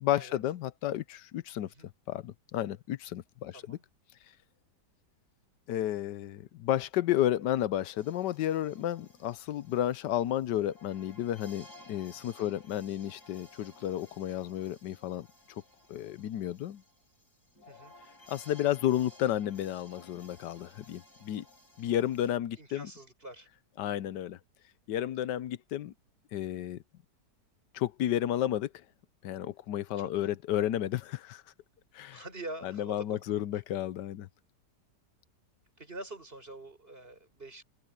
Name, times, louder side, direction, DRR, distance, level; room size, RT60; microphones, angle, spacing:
voice 1, 0.0-1.7 2.1-3.8 5.7-15.3 15.9-16.8 18.3-21.4 21.8-22.9 23.8-24.4 24.9-25.9 26.3-26.8 27.7-28.7 29.2-31.4 31.9-32.2 32.6-34.3, left 12 dB, 85° left, 1.3 m, -32 dB
voice 2, 3.5-3.8 12.4-12.6 17.7-17.9 22.6-23.5 30.0-30.3 32.1-33.6 35.8-37.6, right 2 dB, 30° right, 6.4 m, -46 dB
sound 1, 8.0-22.4, left 1 dB, 65° left, 5.6 m, -57 dB
omnidirectional pair, 1.8 m